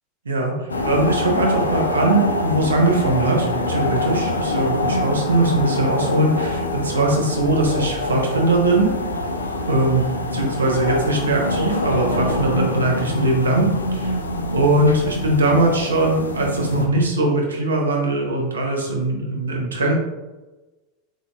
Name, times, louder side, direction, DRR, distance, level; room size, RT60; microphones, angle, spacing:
voice 1, 0.3-8.9 9.7-10.1 10.3-14.2 14.5-20.0, right 2 dB, 85° right, 0 dB, 0.7 m, -20 dB
sound 1, 0.7-16.9, left 1 dB, 90° left, 0.3 m, -25 dB
3.7 x 3.6 x 2.3 m, 1.1 s
hypercardioid pair, 85°, 0 cm